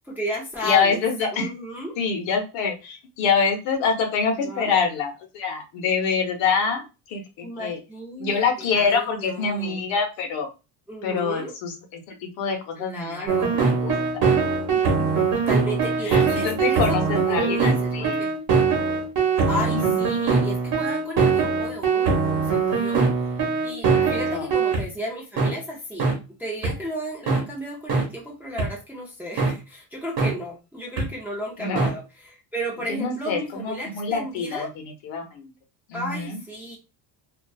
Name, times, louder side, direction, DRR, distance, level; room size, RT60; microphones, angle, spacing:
voice 1, 0.1-1.0 1.3-2.0 4.4-4.8 7.4-9.8 10.9-11.5 12.8-13.6 15.3-18.3 19.5-26.1 26.4-34.7 35.9-36.8, equal, 5° right, -3 dB, 0.4 m, -34 dB
voice 2, 0.6-1.5 2.0-7.8 8.2-10.5 11.0-14.0 14.7-14.8 16.0-18.2 19.5-20.0 23.8-24.5 31.6-31.9 32.9-35.5 35.9-36.4, left 5 dB, 75° left, 3 dB, 0.9 m, -26 dB
sound 1, 13.3-24.8 25.4-25.5 26.0-26.1 26.6-26.7 27.3-27.4 27.9-28.0 28.6-28.7 29.4-29.5 30.2-30.3 31.0-31.1 31.8-31.9, right 5 dB, 45° right, 1.0 m, -22 dB
2.5 x 2.4 x 2.3 m, 0.28 s
cardioid pair, 145°, 46 cm